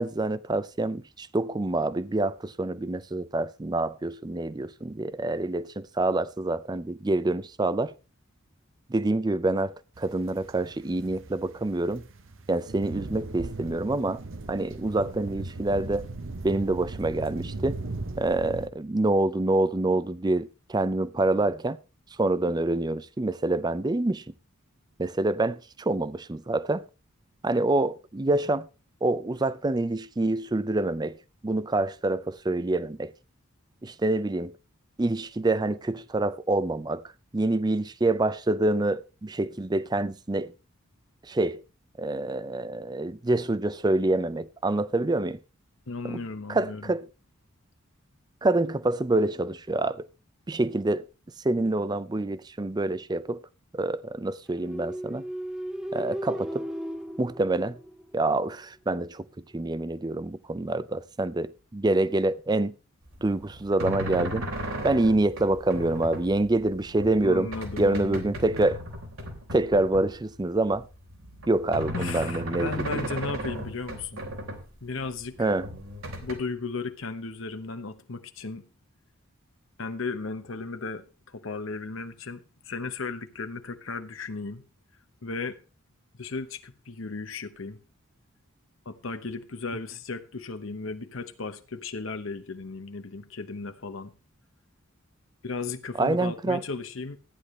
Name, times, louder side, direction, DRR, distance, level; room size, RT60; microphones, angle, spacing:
voice 1, 0.0-7.9 8.9-12.1 12.5-14.2 14.5-16.1 16.4-17.8 18.2-21.8 22.2-24.2 25.0-26.8 27.4-28.7 29.0-31.2 31.4-33.1 33.8-34.5 35.0-37.0 37.3-40.5 41.3-41.6 42.0-45.4 46.0-46.2 46.5-47.1 48.4-50.1 50.5-51.1 51.4-53.4 53.7-55.2 55.9-56.7 57.2-57.8 58.1-62.7 63.2-64.5 64.8-67.5 67.8-68.8 69.5-70.9 71.5-73.1 75.4-75.7 96.0-96.6, right 2 dB, 20° right, 0.4 m, -26 dB
sound 1, 10.0-18.7, right 2 dB, 60° right, 0.9 m, -38 dB
voice 2, 45.9-46.9 67.2-68.3 71.9-74.3 74.8-75.5 76.2-78.7 79.8-84.6 85.2-85.6 86.2-87.8 88.8-94.1 95.4-97.2, left 3 dB, 65° left, 1.0 m, -35 dB
sound 2, 54.5-58.3, equal, 5° right, 1.5 m, -35 dB
sound 3, 63.1-70.3 70.6-74.6 75.0-76.3, equal, 80° right, 3.7 m, -36 dB
14.5 x 10.0 x 3.1 m
head